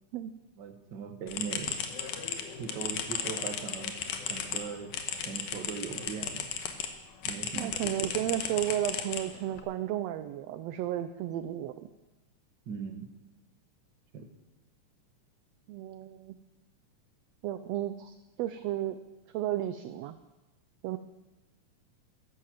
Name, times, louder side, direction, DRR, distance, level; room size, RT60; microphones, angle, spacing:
voice 1, 0.6-1.8 2.6-3.9 4.3-4.9 5.3-6.5 7.2-8.1 12.7-13.1 14.1-14.3, right 6 dB, 45° right, 5 dB, 1.7 m, -39 dB
sound 1, 1.3-6.9 7.2-9.6, left 7 dB, 80° left, 2.7 m, -35 dB
voice 2, 7.5-11.9 15.7-16.4 17.4-19.0 19.3-20.2 20.8-21.0, right 12 dB, 75° right, 10 dB, 1.6 m, -33 dB
13.5 x 11.0 x 7.6 m, 1.1 s
omnidirectional pair, 3.5 m